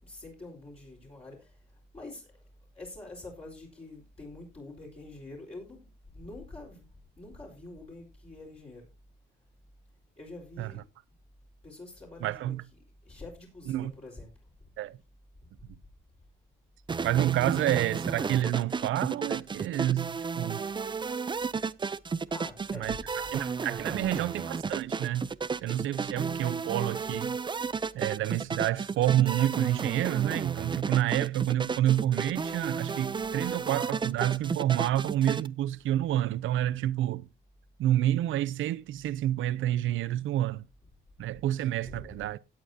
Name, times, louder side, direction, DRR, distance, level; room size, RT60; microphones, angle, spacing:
voice 1, 0.0-2.5 2.7-6.9 7.1-8.9 10.2-10.8 11.6-14.3 22.3-23.5 23.8-24.2 33.4-33.6 41.8-42.3, left 2 dB, 30° left, 4.7 m, -46 dB
voice 2, 12.2-12.6 13.7-13.9 14.8-15.0 17.0-20.6 22.7-25.3 25.6-27.4 27.9-37.3 37.8-40.7 41.2-42.4, right 13 dB, 80° right, 0.7 m, -28 dB
sound 1, 16.9-35.5, right 5 dB, 25° right, 0.5 m, -33 dB
17.0 x 9.0 x 2.8 m
cardioid pair, 90°, 20 cm